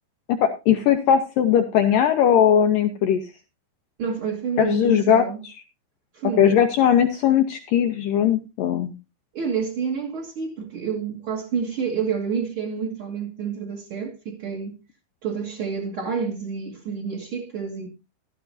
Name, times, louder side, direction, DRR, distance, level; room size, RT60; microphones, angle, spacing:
voice 1, 0.4-3.2 4.6-5.3 6.4-8.9, left 9 dB, 90° left, 1.9 m, -19 dB
voice 2, 4.0-5.4 6.1-6.6 9.3-14.8 15.2-17.9, right 6 dB, 55° right, 1.5 m, -28 dB
14.5 x 13.0 x 2.7 m
omnidirectional pair, 5.2 m